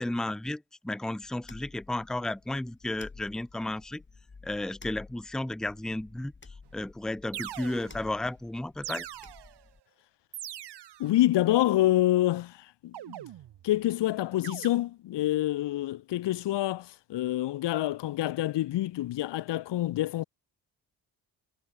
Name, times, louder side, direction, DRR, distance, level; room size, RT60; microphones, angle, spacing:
voice 1, 0.0-4.0 4.4-6.3 6.7-9.1, left 1 dB, ahead, 0.7 m, -33 dB
sound 1, 1.2-9.8, left 4 dB, 25° left, 3.0 m, -52 dB
sound 2, 6.7-6.8 7.3-8.2 8.8-9.7 10.3-11.1 12.9-13.7 14.4-14.7, right 12 dB, 70° right, 1.5 m, -42 dB
voice 2, 11.0-13.2 13.6-20.2, left 14 dB, 85° left, 1.1 m, -27 dB
cardioid pair, 105°, 41 cm